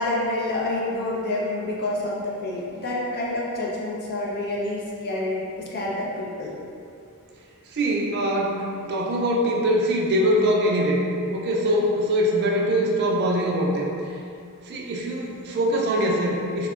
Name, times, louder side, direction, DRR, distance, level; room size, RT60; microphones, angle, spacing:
voice 1, 0.0-5.4 5.7-6.5, left 2 dB, 45° left, -5 dB, 0.5 m, -28 dB
voice 2, 7.7-11.0 11.3-13.9 14.7-16.7, equal, 45° right, -2 dB, 0.3 m, -23 dB
3.5 x 2.0 x 2.3 m, 2.5 s
head